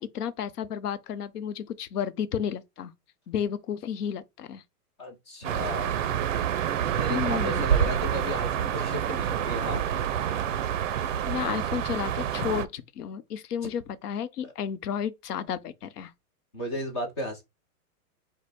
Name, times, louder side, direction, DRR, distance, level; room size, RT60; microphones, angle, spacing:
voice 1, 0.0-2.9 3.3-4.6 7.1-7.6 10.9-11.0 11.3-16.1, left 8 dB, 80° left, 0.8 m, -32 dB
voice 2, 5.0-5.9 7.0-9.8 14.4-14.5 16.5-17.4, left 1 dB, 20° left, 0.6 m, -34 dB
sound 1, 5.4-12.6, right 9 dB, 55° right, 0.6 m, -27 dB
5.1 x 2.2 x 4.1 m
supercardioid pair, 175°, 46 cm